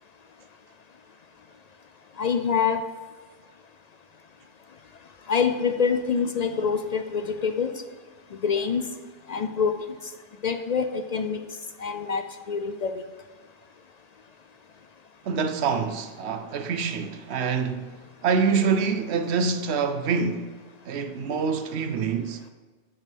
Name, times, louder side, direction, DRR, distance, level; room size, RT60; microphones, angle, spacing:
voice 1, 2.2-2.8 5.3-7.7 8.4-8.8 9.3-9.7 10.4-11.4 11.8-13.0, left 6 dB, 55° left, 0.5 m, -25 dB
voice 2, 15.2-20.6 20.9-22.4, right 5 dB, 90° right, 1.0 m, -26 dB
8.9 x 4.8 x 5.4 m
omnidirectional pair, 1.1 m